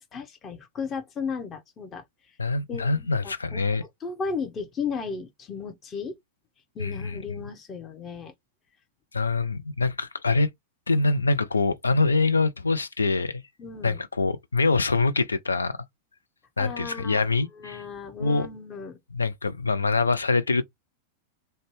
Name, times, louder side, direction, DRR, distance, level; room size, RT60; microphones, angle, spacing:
voice 1, 0.0-2.0 2.7-3.6 4.0-6.1 6.7-8.3 13.6-14.0 16.6-19.0, left 5 dB, 25° left, 0.8 m, -35 dB
voice 2, 2.4-3.8 6.8-7.5 9.1-10.5 10.9-13.4 13.8-15.8 16.6-17.8 18.2-18.5 19.1-20.6, left 3 dB, 75° left, 0.3 m, -24 dB
2.6 x 2.2 x 3.1 m
figure-of-eight pair, 90°, 0 cm